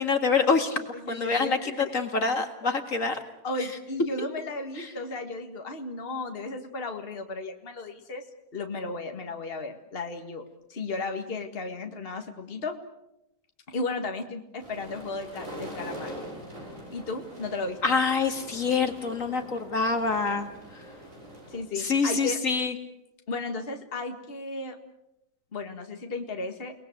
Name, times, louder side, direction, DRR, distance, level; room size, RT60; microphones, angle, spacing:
voice 1, 0.0-3.2 4.8-4.9 17.8-20.5 21.8-22.7, left 4 dB, 55° left, 6 dB, 2.4 m, -26 dB
voice 2, 1.0-1.8 3.4-8.2 8.5-10.4 10.7-12.8 13.7-16.1 16.9-17.8 21.5-22.4 23.3-24.8 25.5-26.7, left 3 dB, 35° left, 5 dB, 2.0 m, -34 dB
sound 1, 14.6-21.6, right 1 dB, 55° right, 7.7 m, -43 dB
30.0 x 20.0 x 7.9 m, 0.88 s
omnidirectional pair, 1.7 m